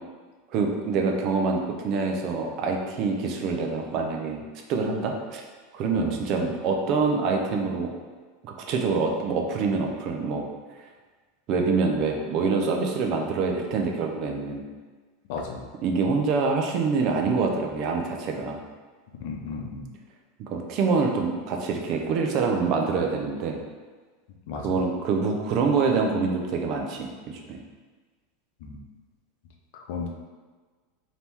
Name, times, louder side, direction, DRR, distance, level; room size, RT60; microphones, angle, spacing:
voice 1, 0.5-4.4 4.7-5.4 5.7-7.9 8.4-10.5 11.5-14.6 15.8-18.6 20.4-23.6 24.6-27.6, right 4 dB, 50° right, 2 dB, 0.7 m, -25 dB
voice 2, 15.3-15.7 19.2-19.9 24.5-24.7 28.6-28.8 29.7-30.1, left 5 dB, 70° left, 1 dB, 0.7 m, -34 dB
3.4 x 2.9 x 4.4 m, 1.4 s
supercardioid pair, 120°, 0 cm